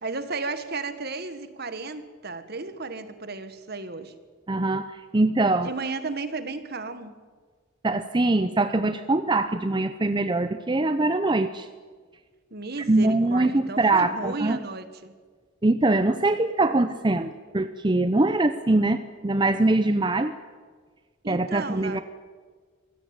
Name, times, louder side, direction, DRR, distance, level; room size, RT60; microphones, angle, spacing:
voice 1, 0.0-4.1 5.6-7.1 12.5-15.1 21.2-22.0, right 3 dB, 50° right, 11 dB, 1.7 m, -34 dB
voice 2, 4.5-5.7 7.8-11.7 12.9-14.6 15.6-20.3 21.3-22.0, right 2 dB, 25° right, 10 dB, 0.7 m, -23 dB
24.5 x 16.5 x 8.9 m, 1.6 s
head